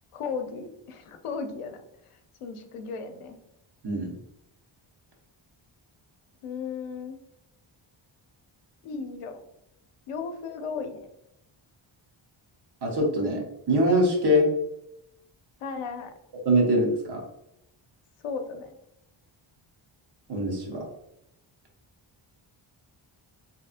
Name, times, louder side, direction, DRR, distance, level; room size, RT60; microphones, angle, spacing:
voice 1, 0.1-1.8 2.1-3.4 6.4-7.2 8.8-9.4 10.1-11.1 15.6-16.1 18.2-18.7, left 5 dB, 85° left, 6 dB, 0.6 m, -35 dB
voice 2, 12.8-13.4 13.7-14.5 16.4-17.2 20.3-20.8, equal, 50° right, 0 dB, 0.9 m, -23 dB
3.5 x 2.9 x 2.4 m, 0.83 s
wide cardioid pair, 125°, 50 cm